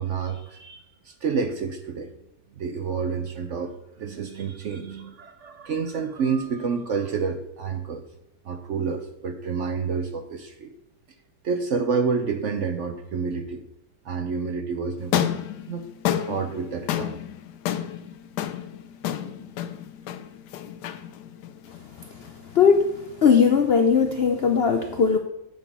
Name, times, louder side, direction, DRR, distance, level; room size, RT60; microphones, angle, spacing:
voice 1, 0.0-2.1 2.6-8.0 8.4-10.7 11.4-13.6 14.0-15.3 15.7-15.9 16.2-17.2 19.2-19.4, right 5 dB, 60° right, 7 dB, 0.8 m, -29 dB
sound 1, 15.0-23.3, left 10 dB, 85° left, 1.2 m, -31 dB
voice 2, 22.5-22.9 23.2-25.2, left 6 dB, 65° left, 5 dB, 0.6 m, -18 dB
8.1 x 6.3 x 5.4 m, 0.87 s
omnidirectional pair, 1.8 m